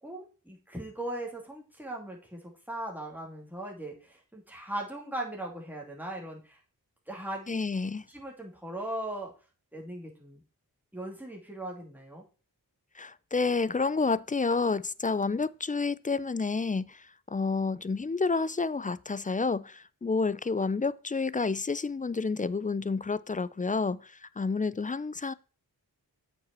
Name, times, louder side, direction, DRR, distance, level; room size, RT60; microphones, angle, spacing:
voice 1, 0.0-6.6 7.1-7.6 8.1-9.3 9.7-10.4 10.9-12.2, right 1 dB, 5° right, 2.6 m, -39 dB
voice 2, 7.5-8.1 13.0-25.3, left 4 dB, 20° left, 0.3 m, -29 dB
8.3 x 5.4 x 4.3 m
wide cardioid pair, 50°, 38 cm